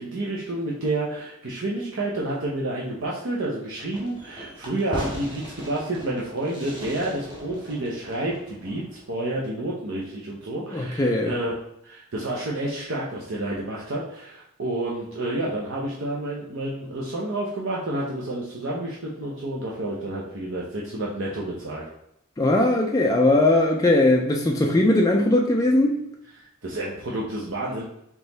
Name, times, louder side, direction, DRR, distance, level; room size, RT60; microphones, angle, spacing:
voice 1, 0.0-11.6 11.8-21.8 26.4-27.8, right 1 dB, 60° right, -4 dB, 0.7 m, -30 dB
Fireworks, 3.9-9.2, equal, 20° right, 0.9 m, -38 dB
voice 2, 10.7-11.3 22.4-25.9, left 2 dB, 15° left, -1 dB, 0.3 m, -19 dB
3.9 x 2.9 x 3.9 m, 0.79 s
head